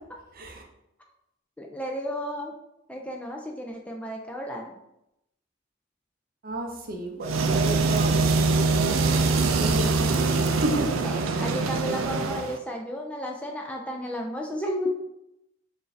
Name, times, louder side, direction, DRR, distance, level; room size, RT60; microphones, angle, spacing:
voice 1, 0.3-0.6 6.4-8.2 9.2-11.1, right 1 dB, 50° right, 2 dB, 0.6 m, -33 dB
voice 2, 1.6-2.5 2.9-4.7 11.0-14.9, equal, 5° left, 0 dB, 0.3 m, -33 dB
sound 1, 7.2-12.6, right 3 dB, 90° right, 0.4 m, -23 dB
4.6 x 2.6 x 3.2 m, 0.85 s
head